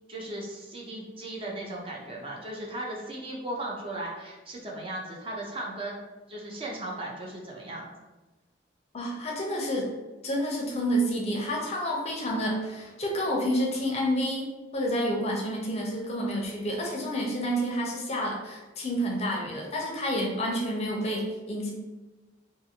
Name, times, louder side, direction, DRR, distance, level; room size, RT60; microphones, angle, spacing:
voice 1, 0.1-6.0 6.3-7.9, right 1 dB, 30° right, -2 dB, 0.5 m, -37 dB
voice 2, 8.9-9.9 10.2-14.5 14.7-21.7, equal, 35° left, 0 dB, 0.5 m, -29 dB
2.5 x 2.5 x 2.8 m, 1.2 s
head